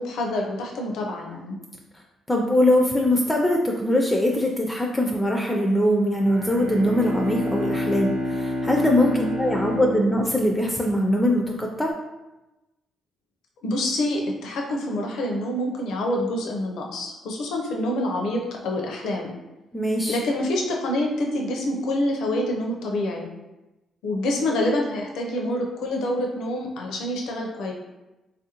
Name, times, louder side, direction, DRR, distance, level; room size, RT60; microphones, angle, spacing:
voice 1, 0.0-1.6 9.0-9.3 13.6-19.3 20.1-23.3 24.0-27.7, left 1 dB, 80° left, 0 dB, 0.5 m, -27 dB
voice 2, 2.3-11.9 19.7-20.2, left 1 dB, 15° left, 1 dB, 0.4 m, -22 dB
Bowed string instrument, 6.2-11.2, left 1 dB, 70° right, 0.8 m, -29 dB
3.3 x 2.5 x 2.8 m, 1.0 s
cardioid pair, 90°, 0 cm